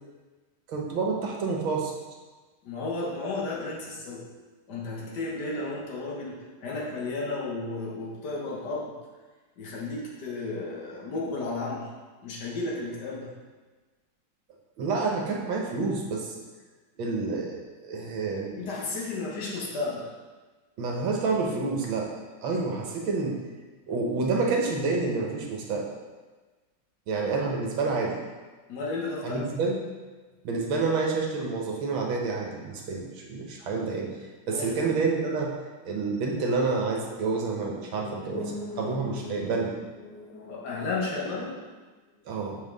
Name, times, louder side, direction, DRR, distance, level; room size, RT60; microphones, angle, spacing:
voice 1, 0.7-1.9 14.8-16.4 17.0-18.6 20.8-22.1 22.4-23.4 23.9-25.8 27.1-28.2 29.2-29.8 30.4-34.1 34.5-35.5 35.8-39.8 42.3-42.6, right 4 dB, 70° right, 0 dB, 1.7 m, -28 dB
voice 2, 2.6-4.3 4.7-8.9 9.6-11.9 12.2-13.3 18.6-20.1 28.7-29.5 34.5-34.8 38.0-39.7 40.0-41.7, left 3 dB, 55° left, -4 dB, 1.8 m, -34 dB
6.7 x 5.5 x 4.0 m, 1.3 s
omnidirectional pair, 2.3 m